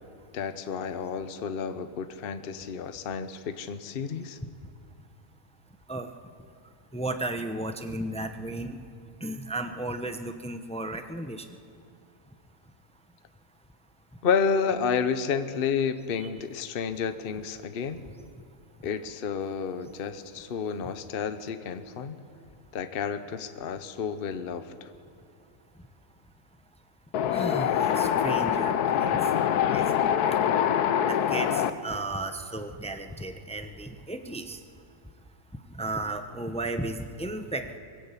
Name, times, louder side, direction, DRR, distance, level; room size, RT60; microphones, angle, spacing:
voice 1, 0.3-4.4 14.2-18.0 18.8-22.2 22.7-24.9, left 6 dB, 45° left, 10 dB, 0.9 m, -30 dB
voice 2, 6.9-8.8 9.2-11.4 27.3-29.2 29.7-29.8 30.2-30.4 31.0-34.6 35.8-37.8, right 2 dB, 5° left, 7 dB, 0.5 m, -34 dB
Wind, 27.1-31.7, left 9 dB, 90° left, 1.3 m, -24 dB
23.0 x 15.5 x 8.3 m, 2.3 s
omnidirectional pair, 1.6 m